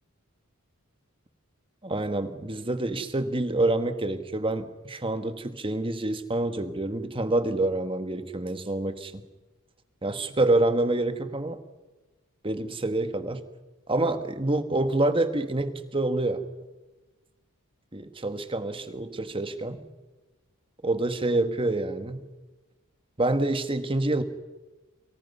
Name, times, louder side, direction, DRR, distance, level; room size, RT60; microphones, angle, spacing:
voice 1, 1.8-9.2 10.0-11.6 12.4-13.5 13.9-16.4 17.9-19.8 20.8-22.3 23.2-24.2, right 2 dB, 25° right, 9 dB, 1.5 m, -27 dB
29.5 x 24.0 x 5.5 m, 1.2 s
head